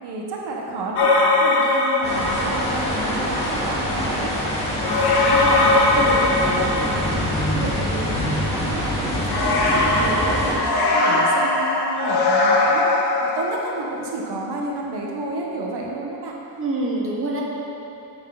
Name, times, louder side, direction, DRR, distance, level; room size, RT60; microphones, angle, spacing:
voice 1, 0.0-4.4 4.8-6.0 6.4-8.2 8.4-16.3, right 2 dB, 75° right, -1 dB, 1.3 m, -31 dB
sound 1, 1.0-2.7 4.8-7.3 9.3-13.7, left 2 dB, 75° left, 1.5 m, -20 dB
sound 2, 2.0-10.5, equal, 15° left, 2.2 m, -25 dB
voice 2, 5.9-6.3 16.6-17.4, right 2 dB, 35° right, -3 dB, 1.2 m, -25 dB
10.0 x 8.1 x 4.0 m, 3.0 s
wide cardioid pair, 170°, 40 cm